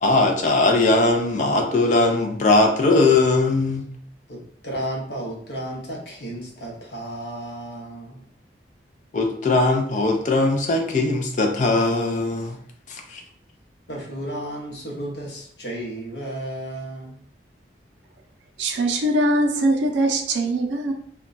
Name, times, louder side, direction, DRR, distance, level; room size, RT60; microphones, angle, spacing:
voice 1, 0.0-3.8 9.1-12.6 12.9-13.2, left 2 dB, 45° left, 3 dB, 0.4 m, -20 dB
voice 2, 4.3-8.2 13.9-17.2, right 1 dB, 65° left, -1 dB, 0.8 m, -33 dB
voice 3, 18.6-20.9, right 1 dB, 85° right, 4 dB, 0.5 m, -21 dB
2.2 x 2.2 x 3.8 m, 0.64 s
head